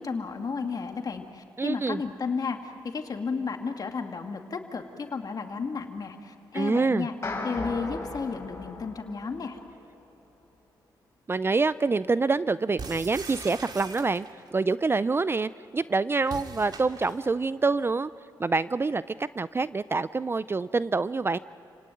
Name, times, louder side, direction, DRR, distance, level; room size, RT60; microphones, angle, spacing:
voice 1, 0.0-7.1 7.4-9.6, left 5 dB, 50° left, 5 dB, 2.3 m, -33 dB
voice 2, 1.6-2.0 6.5-7.1 11.3-14.3 14.5-18.1 18.4-21.4, right 4 dB, 30° right, 16 dB, 0.5 m, -26 dB
sound 1, 7.2-9.7, left 2 dB, 30° left, 5.2 m, -36 dB
sound 2, 12.8-14.5 16.2-17.4, right 4 dB, 55° right, 2.4 m, -41 dB
29.5 x 18.5 x 9.2 m, 2.9 s
cardioid pair, 70°, 8 cm